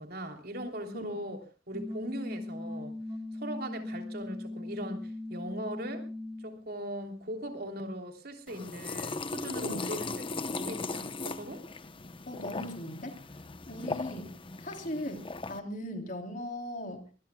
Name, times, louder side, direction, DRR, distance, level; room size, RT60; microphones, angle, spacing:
voice 1, 0.0-1.4 1.7-2.9 3.3-6.1 6.4-10.1 10.3-11.6 13.7-13.9, equal, 55° right, 5 dB, 3.2 m, -39 dB
voice 2, 0.9-1.3 9.6-9.9 12.3-13.2 13.7-14.3 14.6-17.1, left 1 dB, 45° left, 4 dB, 3.5 m, -39 dB
sound 1, 1.7-6.7, left 2 dB, 25° right, 5.5 m, -39 dB
sound 2, 8.5-15.6, left 3 dB, 30° left, 0.9 m, -38 dB
24.5 x 21.0 x 2.3 m, 0.33 s
head